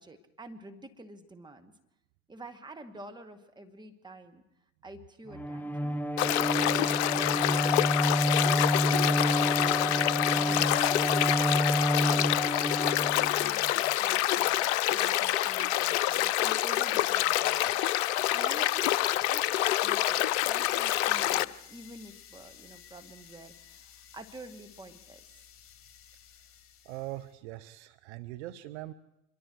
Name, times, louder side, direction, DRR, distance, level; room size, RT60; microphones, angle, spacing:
voice 1, 0.0-1.7 2.3-4.4 4.8-8.0 8.4-11.2 12.0-17.8 18.3-25.2, right 2 dB, 10° right, 6 dB, 2.2 m, -48 dB
Bowed string instrument, 5.3-13.7, equal, 5° left, 0.7 m, -29 dB
River flow, 6.2-21.4, left 14 dB, 60° left, 0.7 m, -27 dB
sound 1, 20.1-27.3, left 9 dB, 35° left, 3.6 m, -55 dB
voice 2, 26.8-28.9, right 16 dB, 60° right, 12 dB, 0.9 m, -41 dB
26.5 x 22.5 x 4.8 m, 0.87 s
figure-of-eight pair, 75°, 39 cm